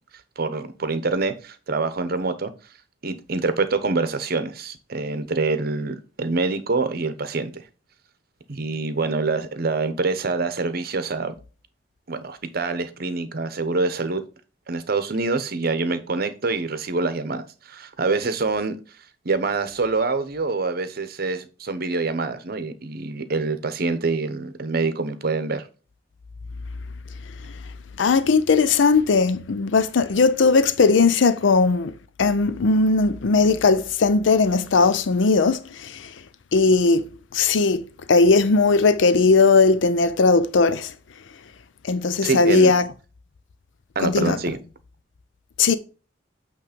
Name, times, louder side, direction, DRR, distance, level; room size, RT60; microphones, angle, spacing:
voice 1, 0.4-2.5 3.0-7.6 8.5-11.3 12.1-14.2 14.7-18.8 19.2-25.6 42.2-42.7 43.9-44.6, right 3 dB, 55° right, 0.9 m, -25 dB
voice 2, 28.0-31.9 32.2-36.1 36.5-40.9 41.8-42.9 44.0-44.4 45.6-45.8, left 4 dB, 80° left, 0.5 m, -18 dB
8.4 x 3.2 x 5.1 m
head